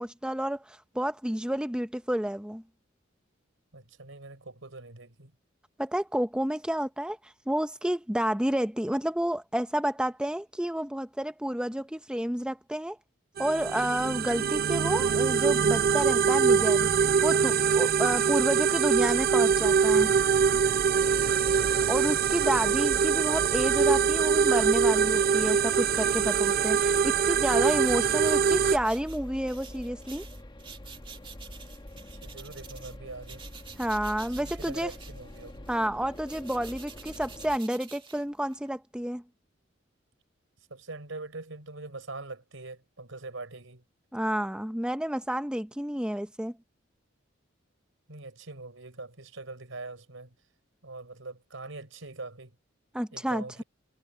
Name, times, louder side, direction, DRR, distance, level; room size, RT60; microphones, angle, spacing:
voice 1, 0.0-2.6 5.8-7.2 7.5-13.0 13.4-16.9 17.2-20.1 21.9-30.2 33.8-34.9 35.7-39.2 44.1-46.5 52.9-53.4, equal, 5° right, 0.8 m, -30 dB
voice 2, 3.7-5.3 21.5-21.8 32.1-33.4 34.4-35.7 40.7-43.8 48.1-50.3 50.8-52.5 53.1-53.6, right 3 dB, 80° right, 4.1 m, -43 dB
sound 1, 13.4-28.8, right 6 dB, 50° right, 0.5 m, -24 dB
sound 2, 20.9-37.6, left 1 dB, 25° left, 1.3 m, -45 dB
sound 3, 25.9-33.0 33.2-38.7, right 6 dB, 25° right, 2.0 m, -50 dB
head